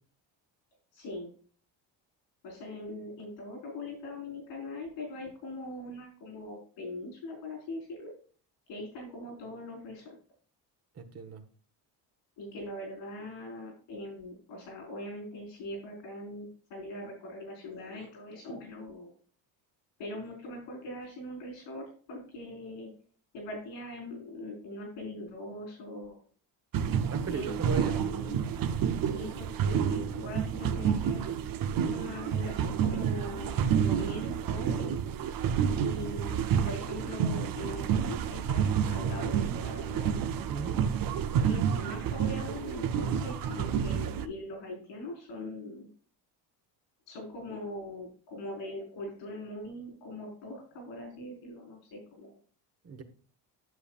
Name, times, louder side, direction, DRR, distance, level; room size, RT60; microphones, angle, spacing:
voice 1, 0.9-1.3 2.4-8.1 8.7-10.1 12.4-19.1 20.0-22.9 23.3-26.2 27.3-28.4 29.0-31.3 31.8-34.9 35.7-40.1 41.3-45.9 47.1-52.3, left 1 dB, 85° left, 1 dB, 4.7 m, -41 dB
voice 2, 10.9-11.4 27.1-28.0 40.5-40.8 52.8-53.0, right 5 dB, 35° right, 7 dB, 1.2 m, -37 dB
sound 1, 26.7-44.3, right 8 dB, 50° right, 0.7 m, -29 dB
11.0 x 6.8 x 2.4 m, 0.42 s
cardioid pair, 105°, 43 cm